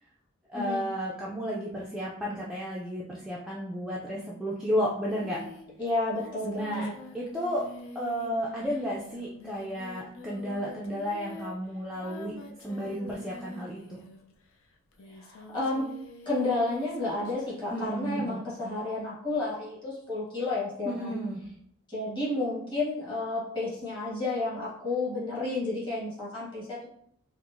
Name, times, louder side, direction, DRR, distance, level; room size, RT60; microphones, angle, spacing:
voice 1, 0.5-5.4 6.4-6.9 7.1-7.6 7.9-12.3 12.6-14.0 17.7-18.4 20.9-21.4, equal, 5° right, -6 dB, 0.3 m, -32 dB
Singing, 5.1-14.4 14.9-17.9, left 2 dB, 75° left, 0.4 m, -47 dB
voice 2, 5.8-6.9 15.1-15.9 16.2-21.2 21.9-26.9, left 2 dB, 20° left, -8 dB, 1.2 m, -31 dB
4.5 x 2.0 x 2.5 m, 0.68 s
head